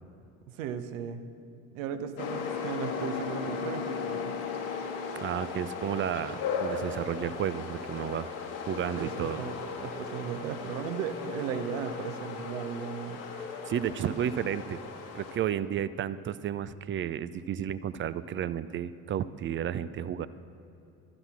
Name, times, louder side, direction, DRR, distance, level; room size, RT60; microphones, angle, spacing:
voice 1, 0.5-1.2 1.7-4.3 9.0-13.2, right 7 dB, 70° right, 9 dB, 0.9 m, -36 dB
sound 1, 2.2-15.4, left 5 dB, 60° left, 1.7 m, -36 dB
voice 2, 5.1-8.3 8.7-9.4 13.4-14.8 15.1-20.3, right 10 dB, 30° right, 15 dB, 0.4 m, -32 dB
12.5 x 10.0 x 6.0 m, 2.8 s
figure-of-eight pair, 60°, 41 cm